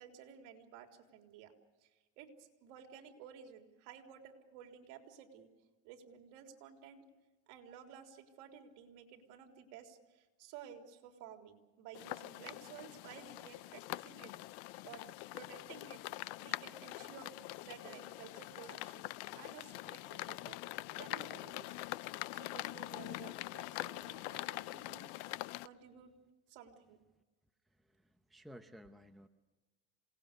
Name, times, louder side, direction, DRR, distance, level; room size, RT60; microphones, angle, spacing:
voice 1, 0.0-1.5 1.8-1.9 2.2-5.5 5.8-7.0 7.5-14.3 14.8-21.9 22.3-26.1 26.5-27.0, right 8 dB, 65° right, 3 dB, 3.7 m, -54 dB
sound 1, 11.9-25.7, left 19 dB, 65° left, 0.7 m, -44 dB
voice 2, 27.7-29.3, equal, ahead, 6 dB, 0.9 m, -56 dB
27.5 x 19.0 x 6.7 m, 1.2 s
supercardioid pair, 135°, 34 cm